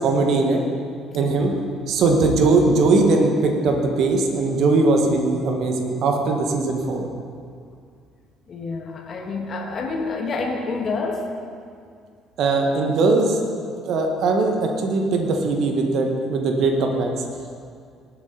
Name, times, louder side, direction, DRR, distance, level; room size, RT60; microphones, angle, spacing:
voice 1, 0.0-0.6 1.1-1.5 1.9-7.0 12.4-13.4 13.8-17.1, right 3 dB, 60° right, 3 dB, 1.8 m, -20 dB
voice 2, 8.5-11.3, left 3 dB, 45° left, 1 dB, 1.9 m, -28 dB
19.0 x 8.2 x 4.2 m, 2.2 s
hypercardioid pair, 55°, 0 cm